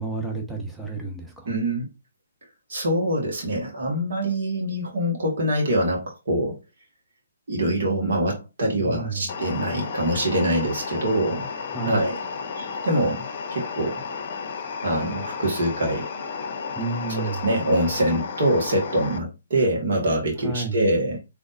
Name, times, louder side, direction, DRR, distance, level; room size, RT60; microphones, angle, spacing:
voice 1, 0.0-1.5 8.8-9.3 11.7-12.0 16.7-17.4 20.4-20.8, right 3 dB, ahead, 1.0 m, -30 dB
voice 2, 1.4-1.9 2.7-6.6 7.5-11.5 11.8-12.2 12.6-14.0 14.8-16.1 17.1-21.2, right 1 dB, 60° right, 1.7 m, -24 dB
sound 1, 9.3-19.2, left 5 dB, 45° left, 0.7 m, -33 dB
3.9 x 3.4 x 2.6 m
figure-of-eight pair, 135°, 0 cm